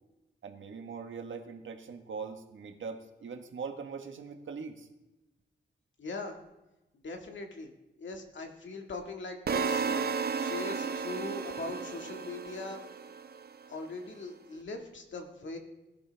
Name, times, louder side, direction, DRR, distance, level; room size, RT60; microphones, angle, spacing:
voice 1, 0.4-4.9, right 5 dB, 85° right, 5 dB, 1.5 m, -41 dB
voice 2, 6.0-6.4 7.0-7.7 8.0-10.0 10.4-12.8 13.7-15.6, left 3 dB, 75° left, 3 dB, 1.9 m, -40 dB
sound 1, 9.5-13.5, right 5 dB, 55° right, 0.6 m, -33 dB
20.0 x 11.5 x 3.4 m, 1.0 s
wide cardioid pair, 150°, 19 cm